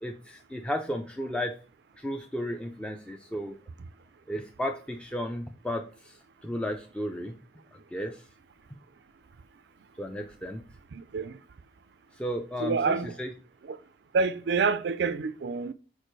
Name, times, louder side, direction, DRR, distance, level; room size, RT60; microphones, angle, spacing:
voice 1, 0.0-1.5 2.0-3.6 4.3-7.4 7.7-8.2 10.0-10.6 12.2-13.3, equal, 5° left, 0.4 m, -34 dB
voice 2, 10.9-11.4 12.6-13.1 13.6-13.8 14.1-15.7, right 4 dB, 65° right, 0.4 m, -27 dB
6.6 x 4.7 x 3.1 m
head